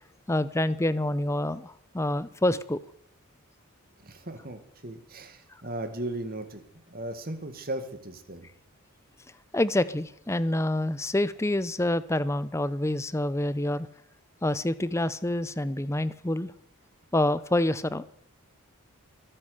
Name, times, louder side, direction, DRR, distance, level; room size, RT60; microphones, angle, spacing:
voice 1, 0.3-2.8 9.5-13.9 14.4-16.5 17.1-18.1, left 1 dB, 10° left, 0.6 m, -27 dB
voice 2, 4.0-6.6 6.9-8.5, right 1 dB, 40° right, 1.9 m, -37 dB
23.0 x 8.9 x 6.6 m
head